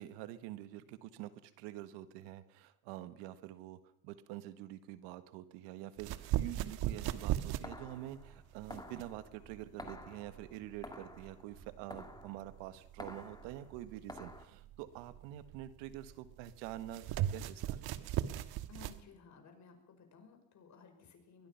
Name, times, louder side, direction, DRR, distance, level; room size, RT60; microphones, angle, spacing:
voice 1, 0.0-3.8 4.0-18.1, right 14 dB, 80° right, 13 dB, 1.6 m, -47 dB
sound 1, 6.0-19.0, right 12 dB, 60° right, 1.5 m, -39 dB
sound 2, 7.0-14.4, left 2 dB, 10° left, 2.3 m, -51 dB
voice 2, 18.7-21.5, left 5 dB, 40° left, 6 dB, 5.6 m, -57 dB
22.5 x 20.0 x 5.8 m, 0.72 s
cardioid pair, 115°, 42 cm